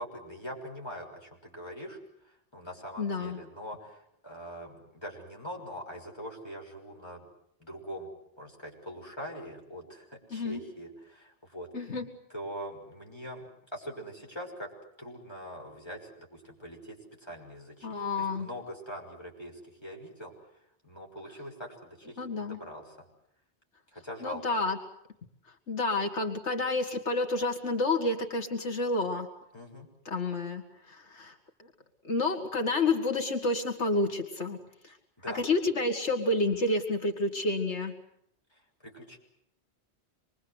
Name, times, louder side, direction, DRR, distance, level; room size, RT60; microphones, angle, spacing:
voice 1, 0.0-2.0 2.2-7.3 7.6-8.1 8.4-11.7 12.3-14.7 15.0-20.3 20.8-23.0 23.9-24.6 29.5-29.9 35.2-35.5 38.5-39.2, equal, 25° left, 0 dB, 6.4 m, -43 dB
voice 2, 3.0-3.4 10.3-10.6 11.7-12.1 17.8-18.5 22.2-22.6 24.2-24.8 25.7-29.3 30.1-31.3 32.0-34.6 34.8-34.9 35.3-37.9, left 2 dB, 90° left, 5 dB, 2.3 m, -29 dB
26.5 x 22.5 x 8.1 m, 0.74 s
omnidirectional pair, 1.1 m